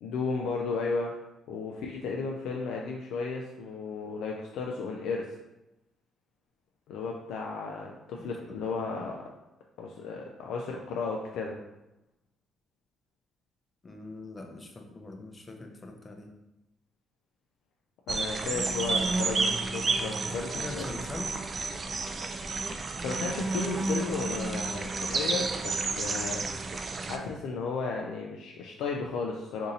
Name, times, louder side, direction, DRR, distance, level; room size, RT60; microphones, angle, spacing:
voice 1, 0.0-1.2 1.5-5.3 6.9-9.3 9.8-11.6 18.1-20.9 23.0-26.4 27.0-29.7, left 4 dB, 85° left, 0 dB, 0.3 m, -34 dB
voice 2, 13.8-16.3 20.3-21.3, left 2 dB, 30° left, 3 dB, 0.5 m, -42 dB
sound 1, 18.1-27.2, right 3 dB, 40° right, 0.3 m, -31 dB
2.7 x 2.5 x 4.0 m, 0.93 s
cardioid pair, 90°, 0 cm